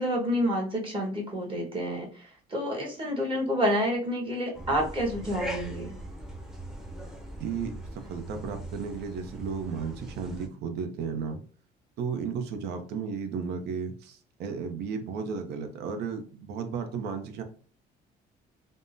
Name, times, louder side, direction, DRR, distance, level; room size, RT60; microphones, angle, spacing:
voice 1, 0.0-5.9, equal, 30° right, -1 dB, 1.2 m, -29 dB
sound 1, 4.5-10.5, right 1 dB, 5° right, 0.6 m, -40 dB
voice 2, 7.4-11.4 12.0-17.4, right 6 dB, 75° right, 7 dB, 0.6 m, -34 dB
3.5 x 2.0 x 2.6 m, 0.41 s
cardioid pair, 110°, 17 cm